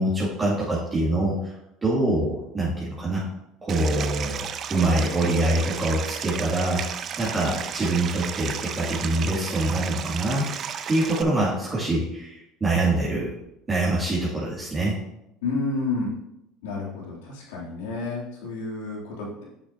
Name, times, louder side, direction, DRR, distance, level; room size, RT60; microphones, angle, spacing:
voice 1, 0.0-1.4 1.8-3.2 3.6-6.8 7.2-10.5 10.9-13.3 13.7-15.0, right 2 dB, 25° right, -8 dB, 2.3 m, -24 dB
Stream, 3.7-11.2, right 8 dB, 45° right, 0.5 m, -33 dB
voice 2, 15.4-16.2 16.6-19.4, left 3 dB, 85° left, -4 dB, 2.8 m, -30 dB
8.4 x 6.9 x 2.8 m, 0.84 s
supercardioid pair, 100°, 0 cm